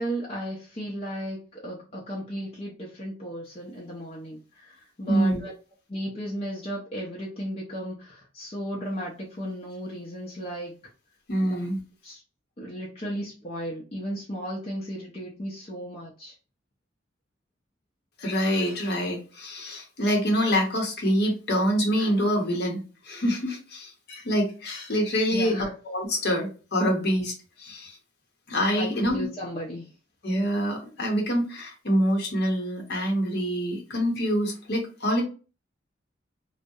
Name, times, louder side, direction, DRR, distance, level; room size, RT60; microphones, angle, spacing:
voice 1, 0.0-5.5 5.9-10.7 11.4-11.6 12.0-12.2 12.6-16.3 25.3-25.7 28.7-29.9, equal, 30° left, -4 dB, 0.5 m, -35 dB
voice 2, 5.1-5.4 11.3-11.8 18.2-28.0 28.5-29.3 30.2-35.2, equal, 55° left, 0 dB, 0.8 m, -26 dB
2.2 x 2.1 x 2.6 m, 0.35 s
head